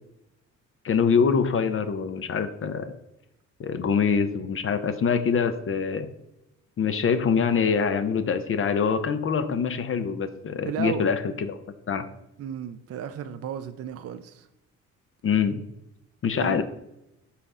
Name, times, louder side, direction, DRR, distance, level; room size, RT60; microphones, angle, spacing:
voice 1, 0.8-2.9 3.6-6.1 6.8-11.6 11.9-12.1 15.2-15.6 16.2-16.6, left 6 dB, 45° left, 0.6 m, -24 dB
voice 2, 10.6-11.1 12.4-14.5 16.3-16.6, right 8 dB, 55° right, 0.5 m, -34 dB
5.7 x 4.0 x 4.9 m
cardioid pair, 90°, 30 cm